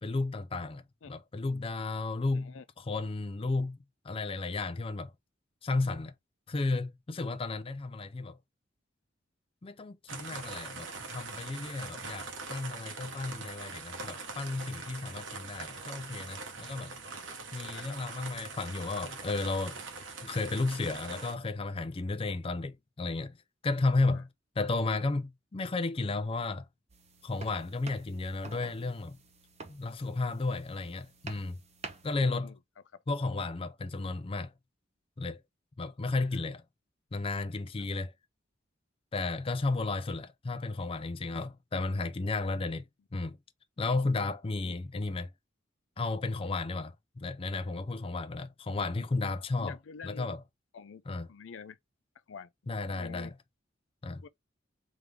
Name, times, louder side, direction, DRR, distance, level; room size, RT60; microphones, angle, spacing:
voice 1, 0.0-3.8 4.0-5.1 5.6-6.1 6.5-8.4 9.6-17.0 17.5-19.8 20.2-23.4 23.6-24.3 24.6-26.7 27.2-29.2 29.7-31.6 32.0-32.6 33.1-34.5 35.2-35.4 35.8-36.6 37.1-38.1 39.1-42.9 43.1-43.4 43.8-45.3 46.0-49.8 50.0-50.4 51.1-51.3 52.7-53.3 54.0-54.2, left 3 dB, 30° left, 0.4 m, -33 dB
voice 2, 2.3-2.6 17.7-18.0 32.3-32.6 36.1-36.4 37.8-37.9 44.6-44.8 49.6-50.3 50.7-51.0 51.3-51.8 52.3-52.5 52.9-53.3 54.2-54.3, left 6 dB, 90° left, 0.5 m, -47 dB
sound 1, 10.1-21.3, right 4 dB, 75° right, 1.1 m, -43 dB
sound 2, 26.9-32.2, right 4 dB, 35° right, 0.8 m, -49 dB
3.6 x 3.4 x 3.2 m
head